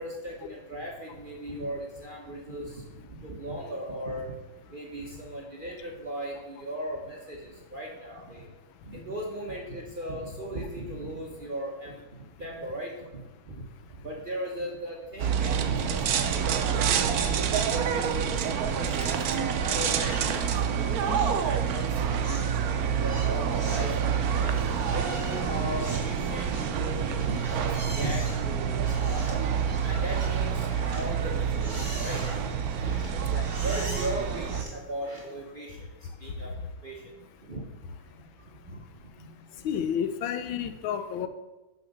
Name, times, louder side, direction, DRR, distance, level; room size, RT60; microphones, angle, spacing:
voice 1, 0.0-2.8 3.2-4.3 4.7-8.5 8.8-12.0 12.4-12.9 13.5-13.6 14.0-17.5 17.8-18.2 18.7-22.5 23.0-23.9 24.3-24.5 24.8-29.4 29.8-31.7 31.9-32.4 32.8-32.9 33.6-35.9 36.2-36.5 36.8-37.1 37.5-37.6 38.1-38.3 38.7-38.8 39.2-39.6, right 1 dB, 40° right, -1 dB, 0.8 m, -37 dB
sound 1, 15.2-34.6, right 7 dB, 65° right, 1.0 m, -27 dB
sound 2, 20.0-20.8 21.0-21.4 21.7-35.5, right 1 dB, 15° right, 2.2 m, -43 dB
voice 2, 39.6-41.3, left 8 dB, 80° left, 10 dB, 1.4 m, -31 dB
6.5 x 5.9 x 6.5 m, 1.1 s
omnidirectional pair, 2.2 m